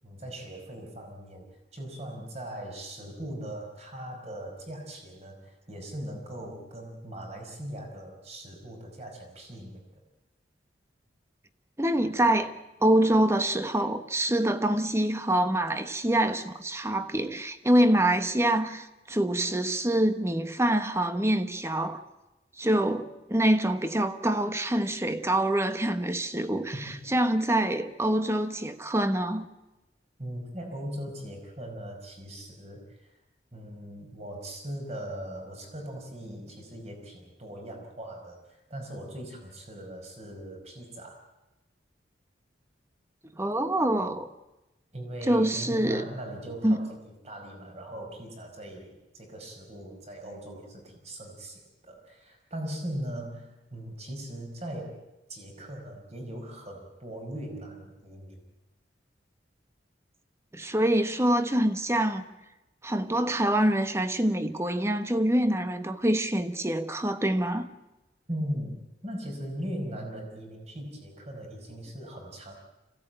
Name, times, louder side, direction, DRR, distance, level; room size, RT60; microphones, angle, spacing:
voice 1, 0.0-9.8 26.7-27.0 30.2-33.1 33.5-41.2 44.9-47.0 47.2-55.0 55.3-58.4 68.3-72.5, right 1 dB, 35° right, 5.1 m, -39 dB
voice 2, 11.8-12.5 12.8-22.0 22.6-26.7 27.1-29.5 43.4-44.3 45.3-46.0 46.6-46.9 60.5-62.2 62.8-67.7, right 1 dB, 15° right, 1.2 m, -25 dB
26.5 x 17.0 x 9.0 m
head